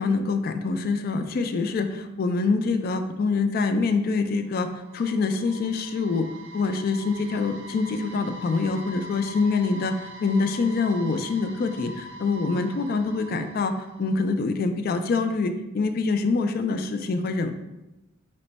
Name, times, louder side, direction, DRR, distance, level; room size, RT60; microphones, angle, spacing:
voice 1, 0.0-4.7 4.9-6.3 6.5-17.5, left 4 dB, 50° left, 8 dB, 0.3 m, -25 dB
sound 1, 4.3-14.4, right 1 dB, 65° right, 0.5 m, -43 dB
4.2 x 2.1 x 4.0 m, 0.98 s
head